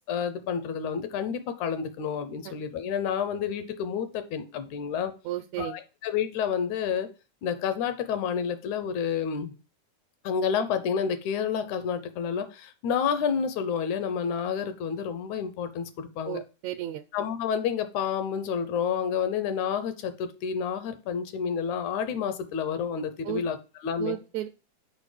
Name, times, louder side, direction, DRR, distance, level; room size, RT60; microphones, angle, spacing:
voice 1, 0.1-5.1 5.6-7.1 7.4-9.5 10.2-16.4 17.1-24.2, left 7 dB, 75° left, 10 dB, 2.1 m, -29 dB
voice 2, 5.2-5.7 16.3-17.0 23.2-23.4 24.0-24.5, right 13 dB, 85° right, 7 dB, 1.6 m, -33 dB
6.5 x 4.9 x 5.0 m, 0.33 s
omnidirectional pair, 3.7 m